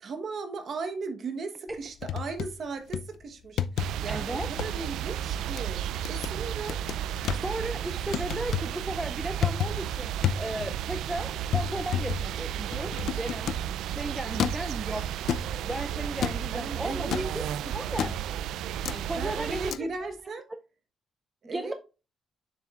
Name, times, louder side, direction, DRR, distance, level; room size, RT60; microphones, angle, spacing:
voice 1, 0.0-3.6 4.0-5.8 6.1-6.8 16.5-17.3 19.2-20.5 21.4-21.7, right 4 dB, 40° right, 1.1 m, -36 dB
sound 1, 1.7-2.6 2.9-3.2 3.6-4.1 4.4-4.7 5.2-5.6 6.0-6.4 6.7-7.4 8.1-8.8 9.2-9.9 10.2-10.8 11.1-11.2 11.5-13.7 14.4-14.7 15.3-15.7 16.2-16.5 17.1-17.3 18.0-18.3 18.8-19.0 19.7-19.8, left 9 dB, 60° left, 0.4 m, -31 dB
sound 2, 3.8-19.7, right 11 dB, 90° right, 0.3 m, -33 dB
voice 2, 4.1-4.5 7.3-13.5 13.8-15.2 15.6-18.1 18.9-20.1 21.4-21.7, right 1 dB, 5° right, 0.4 m, -35 dB
7.1 x 6.9 x 2.4 m
cardioid pair, 165°, 0 cm